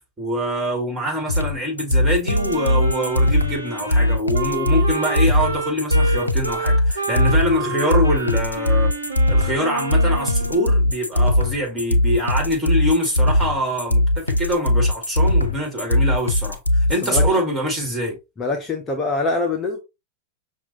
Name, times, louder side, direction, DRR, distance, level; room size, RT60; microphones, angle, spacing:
voice 1, 0.2-8.9 9.3-18.2, equal, 15° right, 2.0 m, -24 dB
sound 1, 1.3-17.3, left 1 dB, 85° left, 0.4 m, -19 dB
Wind instrument woodwind instrument, 2.3-10.7, right 2 dB, 80° right, 0.8 m, -29 dB
voice 2, 17.0-17.5 18.4-19.8, left 3 dB, 20° left, 0.8 m, -24 dB
5.8 x 2.4 x 2.9 m
figure-of-eight pair, 90°, 0 cm